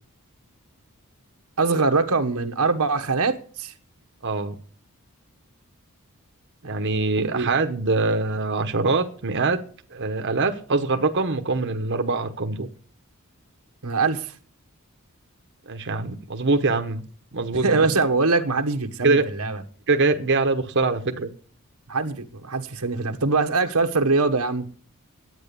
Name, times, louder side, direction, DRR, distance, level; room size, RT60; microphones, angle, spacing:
voice 1, 1.6-3.7 7.2-7.5 13.8-14.3 17.6-19.6 21.9-24.7, right 3 dB, 85° right, 1.4 m, -23 dB
voice 2, 4.2-4.6 6.6-9.6 9.9-12.7 15.7-17.0 17.3-17.9 19.0-19.2 19.9-21.3, right 3 dB, 55° right, 1.0 m, -23 dB
11.0 x 9.1 x 6.9 m
head